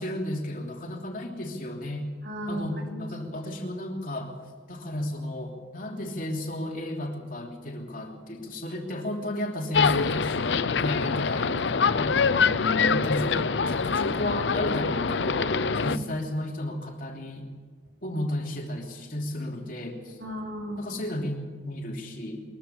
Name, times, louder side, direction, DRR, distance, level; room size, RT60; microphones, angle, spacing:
voice 1, 0.0-2.1 2.5-4.3 4.7-12.2 12.9-17.5 18.0-20.2 20.8-22.4, left 1 dB, 50° left, 1 dB, 3.1 m, -33 dB
voice 2, 2.2-3.1 12.3-13.1 15.8-16.0 20.2-20.8, equal, 70° right, 0 dB, 4.4 m, -34 dB
sound 1, 9.7-16.0, left 5 dB, 90° left, 0.7 m, -25 dB
22.0 x 14.5 x 8.6 m, 1.4 s
head